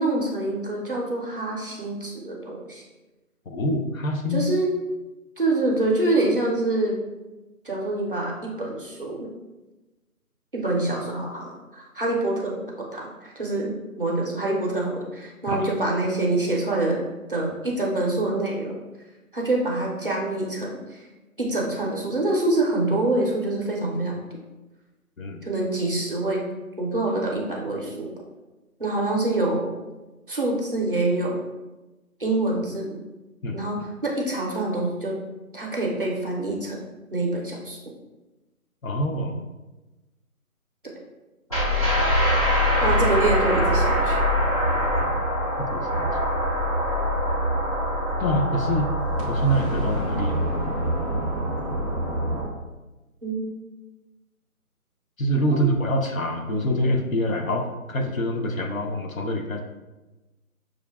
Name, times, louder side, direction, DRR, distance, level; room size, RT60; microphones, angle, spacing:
voice 1, 0.0-2.8 4.3-4.7 5.4-7.0 7.6-9.3 10.5-17.0 17.3-18.8 19.3-21.1 21.4-24.2 25.4-26.4 26.8-28.1 28.8-29.7 30.3-31.4 32.2-33.0 33.5-35.1 35.5-36.8 37.1-37.8 42.8-44.2 53.2-53.4 55.5-55.8, right 2 dB, 40° right, -3 dB, 0.6 m, -26 dB
voice 2, 3.5-4.5 15.5-15.7 25.2-25.4 33.4-33.6 38.8-39.4 45.6-46.1 48.2-48.9 49.3-50.4 55.2-59.6, equal, 65° left, 2 dB, 0.7 m, -25 dB
sound 1, 41.5-52.4, equal, 25° left, 0.8 m, -24 dB
6.3 x 2.4 x 2.3 m, 1.1 s
figure-of-eight pair, 160°, 44 cm